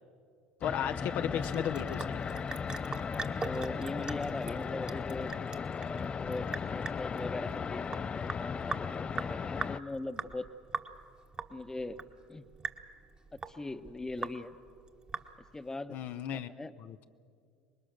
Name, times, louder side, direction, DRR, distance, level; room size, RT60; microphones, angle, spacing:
voice 1, 0.6-2.0 15.9-16.5 16.8-17.0, left 9 dB, 60° left, 9 dB, 0.7 m, -34 dB
sound 1, 0.6-9.8, left 6 dB, 30° left, 0.4 m, -36 dB
Sink (filling or washing) / Drip, 1.2-15.7, right 4 dB, 25° right, 1.2 m, -42 dB
voice 2, 3.0-5.3 5.6-10.5 11.5-12.0 12.3-12.5 13.3-14.6 15.5-16.0 16.3-16.7, left 2 dB, 15° left, 11 dB, 1.0 m, -40 dB
25.0 x 20.5 x 6.5 m, 2.3 s
hypercardioid pair, 80°, 4 cm